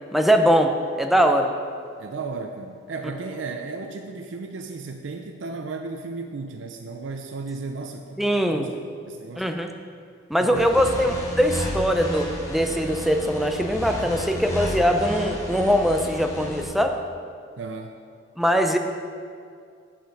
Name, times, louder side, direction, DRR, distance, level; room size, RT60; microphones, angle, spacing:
voice 1, 0.1-1.5 8.2-8.7 9.4-9.7 10.3-17.0 18.4-18.8, equal, ahead, 4 dB, 0.5 m, -21 dB
voice 2, 2.0-8.2 8.5-8.7 9.1-9.5 10.4-11.0 17.6-18.0, right 3 dB, 85° right, 5 dB, 0.5 m, -34 dB
sound 1, 10.5-16.6, left 1 dB, 20° left, 1.7 m, -32 dB
9.1 x 6.7 x 5.2 m, 2.2 s
head